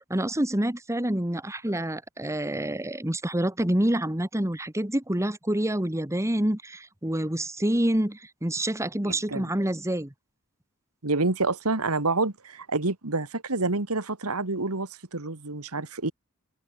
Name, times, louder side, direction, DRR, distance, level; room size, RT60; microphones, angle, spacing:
voice 1, 0.1-10.1, right 1 dB, 15° right, 1.7 m, -27 dB
voice 2, 9.0-9.5 11.0-16.1, right 3 dB, 85° right, 2.2 m, -28 dB
head